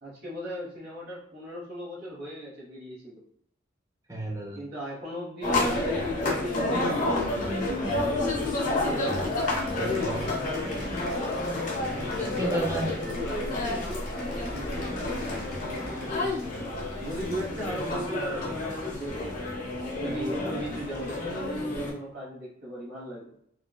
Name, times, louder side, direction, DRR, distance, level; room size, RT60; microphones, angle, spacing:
voice 1, 0.0-3.2 4.5-8.0 8.6-9.4 12.4-16.3 17.0-23.4, equal, 55° right, -5 dB, 1.2 m, -38 dB
voice 2, 4.1-4.6 9.7-10.4 12.2-12.9 16.2-16.7, right 1 dB, 15° right, 0 dB, 0.4 m, -33 dB
sound 1, 5.4-21.9, left 2 dB, 40° left, 0.7 m, -30 dB
Cheering / Applause, 8.4-18.0, left 2 dB, 75° left, 0.9 m, -44 dB
3.3 x 2.1 x 2.2 m, 0.68 s
head